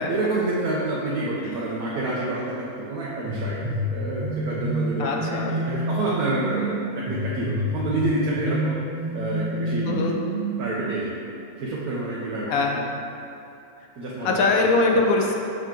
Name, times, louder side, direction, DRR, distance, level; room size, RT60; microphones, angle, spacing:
voice 1, 0.0-8.8 9.1-10.1 10.6-11.1 11.6-12.6 14.0-14.7, right 2 dB, 80° right, -6 dB, 1.3 m, -28 dB
sound 1, 3.2-10.9, right 1 dB, 35° right, 0.7 m, -29 dB
voice 2, 5.0-5.5 9.8-10.2 12.5-12.9 14.2-15.4, left 3 dB, 70° left, 0 dB, 1.1 m, -22 dB
6.6 x 5.1 x 3.8 m, 2.7 s
omnidirectional pair, 1.6 m